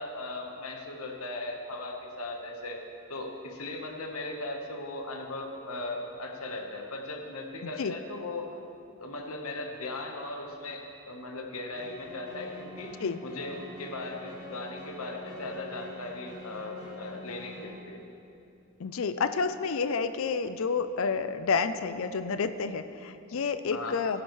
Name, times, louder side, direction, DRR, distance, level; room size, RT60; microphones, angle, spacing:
voice 1, 0.0-2.8 3.1-8.5 9.0-12.9 13.2-18.0 23.7-24.0, left 2 dB, 85° left, 2 dB, 1.2 m, -38 dB
voice 2, 7.6-7.9 13.0-13.2 18.8-24.2, left 5 dB, 65° left, 11 dB, 0.5 m, -30 dB
sound 1, 11.7-17.7, left 1 dB, 45° left, 2.7 m, -45 dB
15.0 x 10.0 x 3.2 m, 2.7 s
head